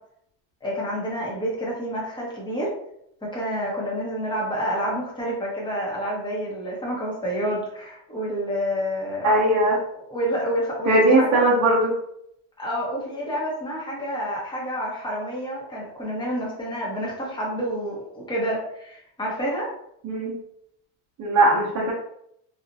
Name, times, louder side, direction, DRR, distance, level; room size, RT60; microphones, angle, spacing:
voice 1, 0.6-2.7 3.2-9.3 9.9-11.4 12.6-19.7, equal, 10° left, -4 dB, 1.0 m, -28 dB
voice 2, 9.2-9.8 10.9-12.0 20.0-20.4 21.2-21.9, right 1 dB, 40° right, -5 dB, 0.8 m, -19 dB
2.9 x 2.4 x 2.6 m, 0.74 s
cardioid pair, 140°, 38 cm